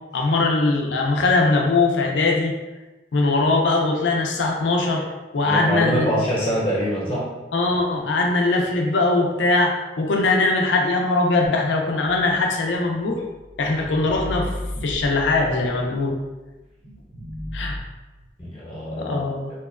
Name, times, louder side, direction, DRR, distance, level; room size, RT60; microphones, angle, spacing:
voice 1, 0.1-2.5 3.1-5.0 5.3-6.2 7.5-13.2 13.6-14.5 14.8-16.2 17.5-17.8 18.9-19.5, left 3 dB, 80° left, 1 dB, 0.4 m, -21 dB
voice 2, 5.4-7.3 18.4-19.2, equal, 30° left, -8 dB, 1.0 m, -24 dB
sound 1, 12.2-16.4 16.8-17.8, left 1 dB, 55° right, 0.7 m, -35 dB
2.8 x 2.1 x 2.3 m, 1.1 s
head